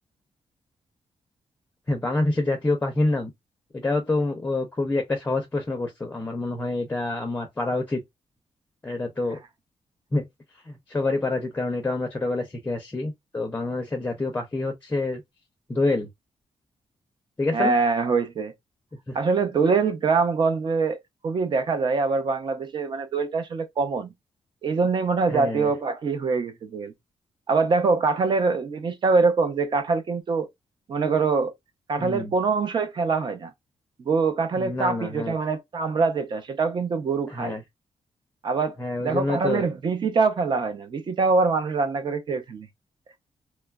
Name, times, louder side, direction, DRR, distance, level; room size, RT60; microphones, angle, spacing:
voice 1, 1.9-3.3 3.7-8.0 8.8-9.4 10.1-10.3 10.6-15.2 15.7-16.1 17.4-17.8 19.1-19.2 25.3-25.7 32.0-32.3 34.6-35.3 37.3-37.6 38.8-39.6, left 2 dB, 20° left, 0.5 m, -27 dB
voice 2, 17.5-18.5 19.1-21.0 21.2-24.1 24.6-26.9 27.5-30.5 30.9-31.5 31.9-33.5 34.0-37.6 38.4-38.7 39.0-42.7, right 4 dB, 45° right, 0.6 m, -24 dB
3.0 x 2.3 x 2.2 m
wide cardioid pair, 155°, 11 cm